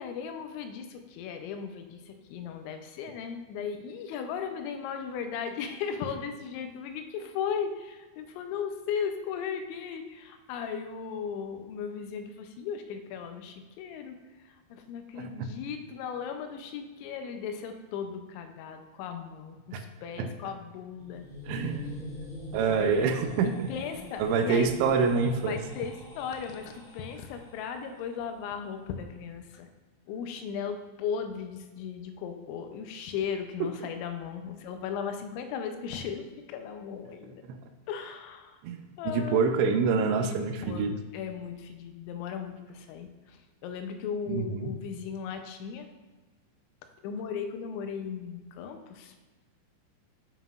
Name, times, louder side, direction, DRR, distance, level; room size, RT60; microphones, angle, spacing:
voice 1, 0.0-21.2 22.6-23.1 23.4-24.7 25.4-29.7 30.1-37.4 37.9-38.6 39.0-39.6 40.2-40.9 41.1-45.9 47.0-49.1, left 7 dB, 90° left, 7 dB, 3.0 m, -37 dB
voice 2, 15.2-15.5 19.7-19.8 20.2-20.3 21.5-22.1 22.5-23.7 24.2-25.6 37.5-37.6 38.6-40.9 44.3-44.7, right 5 dB, 85° right, 7 dB, 2.8 m, -27 dB
sound 1, 20.9-27.8, left 2 dB, 40° left, 2.0 m, -44 dB
9.3 x 5.5 x 2.4 m, 1.2 s
omnidirectional pair, 5.1 m